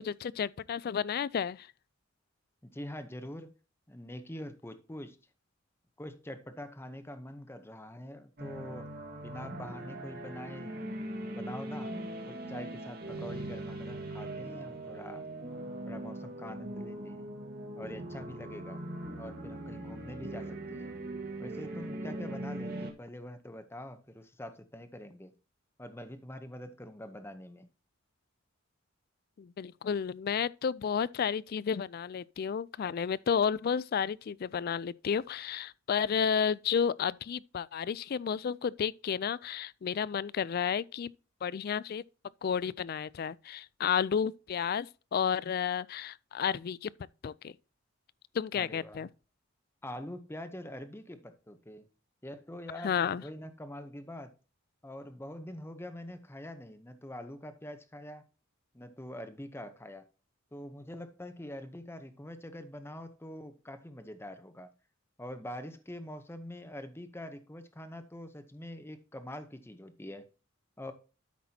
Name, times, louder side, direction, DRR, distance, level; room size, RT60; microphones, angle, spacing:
voice 1, 0.0-1.7 29.4-41.1 41.4-42.0 42.4-46.9 47.2-47.5 48.3-49.1 52.8-53.2, left 7 dB, 45° left, 0.3 m, -32 dB
voice 2, 2.6-3.5 3.9-5.2 6.0-8.9 9.2-11.9 12.2-15.2 15.9-17.3 17.8-18.8 19.2-21.0 21.4-25.3 25.8-27.7 48.5-49.1 49.8-51.9 52.2-54.3 54.8-58.2 58.7-60.1 60.5-64.7 65.2-70.3 70.8-70.9, left 1 dB, 10° left, 0.8 m, -44 dB
sound 1, 8.4-22.9, right 1 dB, 45° right, 1.8 m, -40 dB
12.5 x 6.0 x 2.8 m
head